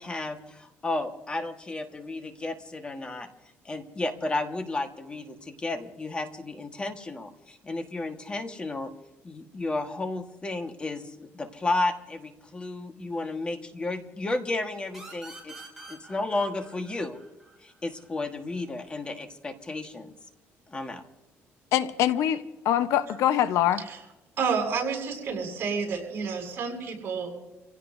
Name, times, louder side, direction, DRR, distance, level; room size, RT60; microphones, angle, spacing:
voice 1, 0.0-3.3 3.6-8.9 9.2-15.5 15.9-17.2 17.6-20.1 20.7-21.0, left 2 dB, 20° left, 6 dB, 1.5 m, -32 dB
sound 1, 14.9-18.3, right 2 dB, 5° right, 5.7 m, -47 dB
voice 2, 21.7-23.8, left 11 dB, 80° left, 11 dB, 0.9 m, -24 dB
voice 3, 24.4-27.3, right 5 dB, 50° right, 0 dB, 7.5 m, -30 dB
28.0 x 16.5 x 2.7 m, 1.0 s
cardioid pair, 130°, 5 cm